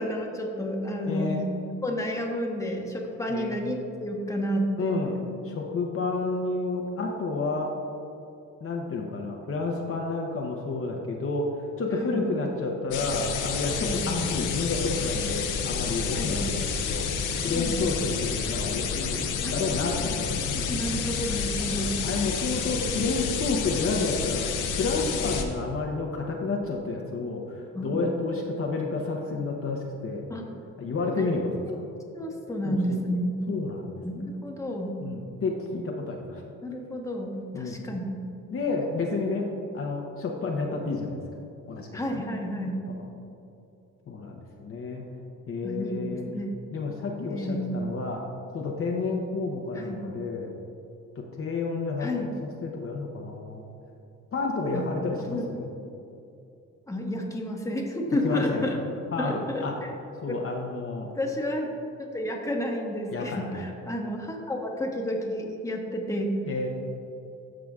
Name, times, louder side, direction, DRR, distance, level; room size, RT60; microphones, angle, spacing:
voice 1, 0.0-1.4 1.8-5.0 12.0-12.2 13.8-14.0 16.1-16.4 17.5-17.8 19.4-20.0 20.4-22.0 27.7-28.2 30.3-30.5 31.1-31.3 31.7-31.8 32.1-33.3 34.0-35.0 36.6-38.0 41.9-42.8 45.6-46.5 47.3-47.7 49.7-50.1 52.0-52.3 54.7-54.8 55.2-55.4 56.9-58.8 59.2-59.9 60.3-60.4 61.1-61.7 62.0-66.3, equal, 10° left, 0 dB, 1.1 m, -31 dB
voice 2, 1.1-1.4 3.3-3.6 4.8-5.1 5.4-7.7 8.6-11.5 11.8-19.2 19.5-20.7 21.7-24.4 24.7-30.2 30.8-31.8 32.6-33.0 33.5-34.0 35.0-36.4 37.5-37.8 38.5-39.5 39.7-41.2 41.7-42.2 42.9-43.0 44.1-45.0 45.5-46.2 46.7-48.2 48.5-50.5 51.4-53.7 54.3-55.7 58.1-58.7 59.1-59.8 60.2-61.1 63.1-63.6 66.5-66.7, left 3 dB, 45° left, 0 dB, 0.8 m, -30 dB
sound 1, 12.9-25.4, left 6 dB, 85° left, 0.8 m, -29 dB
14.0 x 4.9 x 2.4 m, 2.7 s
cardioid pair, 90°, 30 cm